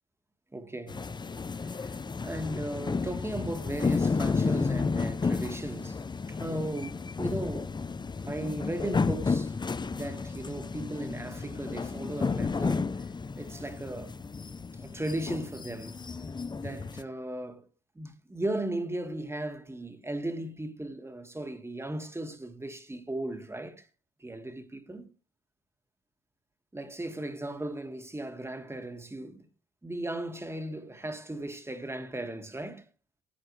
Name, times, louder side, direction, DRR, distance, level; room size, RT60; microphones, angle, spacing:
voice 1, 0.5-1.0 1.7-2.0 2.2-6.0 6.3-7.7 8.3-9.5 9.9-12.9 13.4-14.1 14.7-16.0 16.6-17.7 18.0-23.9 24.2-25.1 26.7-29.5 29.8-32.8, right 1 dB, 15° right, 2.0 m, -36 dB
sound 1, 0.9-17.0, left 4 dB, 20° left, 0.6 m, -32 dB
16.5 x 8.7 x 3.3 m
cardioid pair, 90°, 20 cm